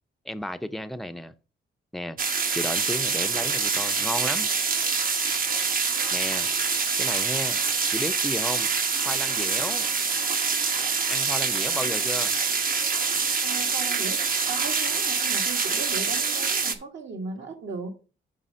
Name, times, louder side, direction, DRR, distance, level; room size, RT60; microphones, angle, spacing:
voice 1, 0.2-1.3 1.9-2.2 2.5-4.5 6.1-6.5 7.0-7.6 7.9-8.7 9.0-9.9 11.1-12.4, left 1 dB, ahead, 0.5 m, -33 dB
sound 1, 2.2-16.7, right 5 dB, 45° right, 0.8 m, -25 dB
voice 2, 13.4-17.9, right 4 dB, 70° right, 1.7 m, -37 dB
5.5 x 5.5 x 5.1 m
cardioid pair, 90°, 20 cm